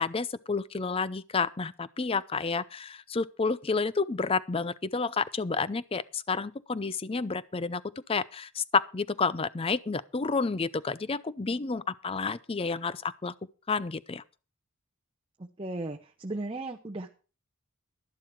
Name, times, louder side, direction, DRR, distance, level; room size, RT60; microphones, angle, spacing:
voice 1, 0.0-7.8 8.1-13.3 13.7-14.2, left 4 dB, 25° left, 0.5 m, -30 dB
voice 2, 15.4-17.1, right 2 dB, 25° right, 0.8 m, -36 dB
11.5 x 11.0 x 4.5 m
head